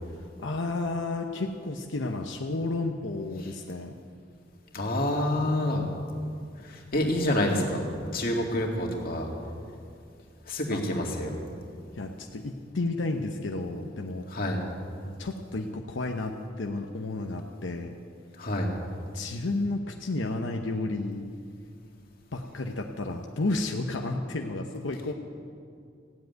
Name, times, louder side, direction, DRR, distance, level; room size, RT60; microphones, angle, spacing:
voice 1, 0.4-4.0 10.5-10.8 11.9-14.3 15.0-18.0 19.1-21.3 22.3-25.1, left 2 dB, 90° left, 3 dB, 0.8 m, -32 dB
voice 2, 4.7-5.8 6.7-7.9 8.1-9.3 10.5-11.4 14.3-14.6 18.4-18.7, left 1 dB, 50° left, 0 dB, 2.2 m, -27 dB
15.5 x 7.9 x 9.3 m, 2.3 s
head